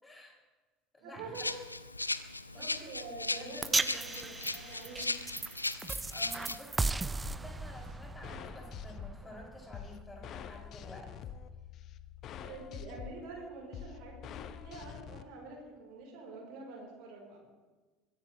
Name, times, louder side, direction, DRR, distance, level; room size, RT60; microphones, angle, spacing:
voice 1, 0.0-0.3 0.9-1.5 2.5-3.0 3.4-3.7 6.1-11.1, left 1 dB, 15° left, -1 dB, 5.9 m, -51 dB
voice 2, 1.0-1.5 2.5-5.1 12.3-17.4, right 3 dB, 55° right, -1 dB, 3.9 m, -46 dB
Rattle (instrument), 1.3-6.6, left 2 dB, 85° left, 0.4 m, -38 dB
sound 1, 3.6-10.0, right 3 dB, 15° right, 0.4 m, -37 dB
sound 2, 7.2-15.2, left 8 dB, 45° left, 0.9 m, -46 dB
22.0 x 15.5 x 3.2 m, 1.3 s
figure-of-eight pair, 65°, 0 cm